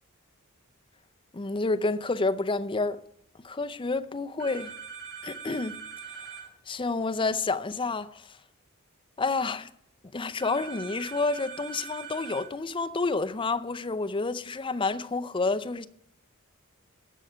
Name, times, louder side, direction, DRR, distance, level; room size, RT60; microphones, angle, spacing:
voice 1, 1.3-3.0 3.4-4.7 5.2-5.8 6.7-8.3 9.2-9.7 10.1-15.9, left 3 dB, 25° left, 0.6 m, -29 dB
sound 1, 4.4-6.5 10.4-12.5, right 6 dB, 75° right, 4.9 m, -42 dB
14.0 x 5.6 x 8.8 m
head